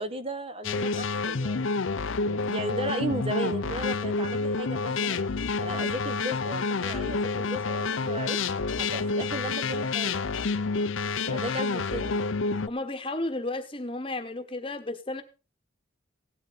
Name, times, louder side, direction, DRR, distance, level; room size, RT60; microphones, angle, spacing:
voice 1, 0.0-1.8 2.3-5.2 5.6-8.4 8.8-10.2 11.2-12.3, right 1 dB, 30° right, 10 dB, 1.0 m, -35 dB
sound 1, 0.6-12.7, left 4 dB, 75° left, 0.7 m, -29 dB
voice 2, 12.7-15.2, left 2 dB, 25° left, 8 dB, 1.2 m, -33 dB
17.0 x 11.0 x 4.1 m, 0.32 s
head